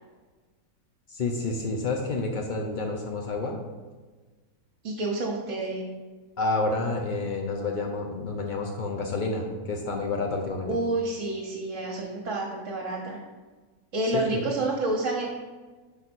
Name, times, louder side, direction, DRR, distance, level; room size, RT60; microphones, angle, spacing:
voice 1, 1.1-3.6 6.4-10.8 14.1-14.5, left 3 dB, 85° left, 2 dB, 0.4 m, -29 dB
voice 2, 4.8-5.8 10.6-13.2 13.9-15.3, right 2 dB, 55° right, -3 dB, 1.2 m, -29 dB
5.5 x 4.0 x 6.0 m, 1.3 s
omnidirectional pair, 1.7 m